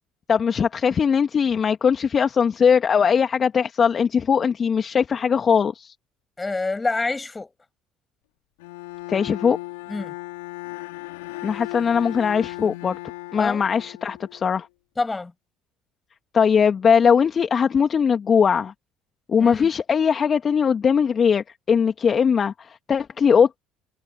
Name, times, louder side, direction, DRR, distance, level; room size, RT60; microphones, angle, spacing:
voice 1, 0.3-5.9 9.1-9.6 11.4-13.0 13.3-14.7 16.3-18.7 19.3-23.6, left 6 dB, 40° left, 2.2 m, -20 dB
voice 2, 6.4-7.5 9.9-10.1 13.4-13.6 15.0-15.3 19.4-19.7, left 3 dB, 20° left, 6.3 m, -27 dB
Bowed string instrument, 8.6-14.6, left 23 dB, 75° left, 4.0 m, -36 dB
hypercardioid pair, 60°, 0 cm